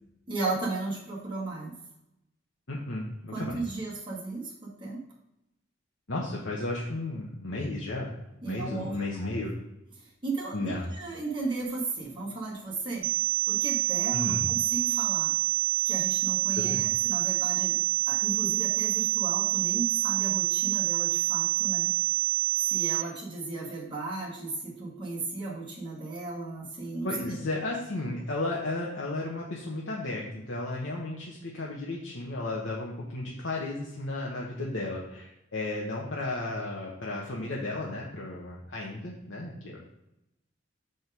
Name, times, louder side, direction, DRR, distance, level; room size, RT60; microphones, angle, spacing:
voice 1, 0.3-1.7 3.3-5.0 8.4-9.3 10.0-13.1 13.5-15.3 15.8-17.8 18.1-21.9 22.6-27.4, right 3 dB, 25° right, -5 dB, 2.3 m, -35 dB
voice 2, 2.7-3.6 6.1-8.1 8.5-9.5 10.5-10.8 14.1-14.5 16.6-16.8 27.0-39.8, left 2 dB, 65° left, -3 dB, 1.2 m, -34 dB
sound 1, 13.0-23.0, right 15 dB, 80° right, 0.4 m, -27 dB
6.2 x 5.2 x 5.2 m, 0.88 s
head